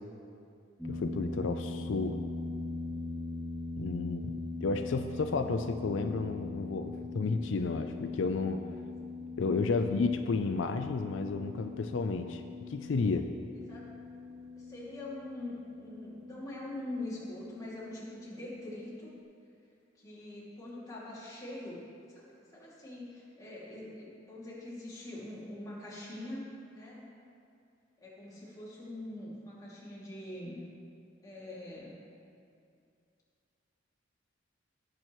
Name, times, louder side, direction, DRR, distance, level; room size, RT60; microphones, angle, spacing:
voice 1, 0.8-2.2 3.8-8.6 9.4-12.4 12.7-13.3, left 4 dB, 85° left, 7 dB, 0.4 m, -32 dB
sound 1, 0.8-19.2, left 2 dB, ahead, 1.9 m, -41 dB
voice 2, 9.7-10.1 13.7-13.9 14.6-19.2 20.0-21.8 22.1-27.1 28.0-30.6 31.2-32.0, left 1 dB, 20° left, -7 dB, 2.4 m, -43 dB
17.0 x 6.1 x 3.1 m, 2.4 s
head